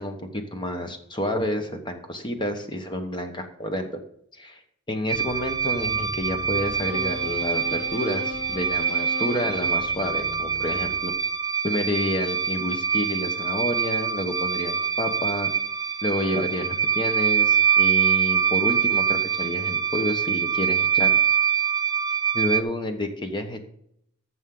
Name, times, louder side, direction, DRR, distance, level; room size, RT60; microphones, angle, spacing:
voice 1, 0.0-4.0 4.3-4.6 4.9-11.1 11.6-15.5 16.0-21.2 22.3-23.7, left 1 dB, 20° left, 6 dB, 1.1 m, -29 dB
sound 1, 5.1-11.4, left 1 dB, 55° left, 2.4 m, -37 dB
sound 2, 5.1-22.6, right 7 dB, 15° right, 0.5 m, -24 dB
14.5 x 6.2 x 3.9 m, 0.71 s
head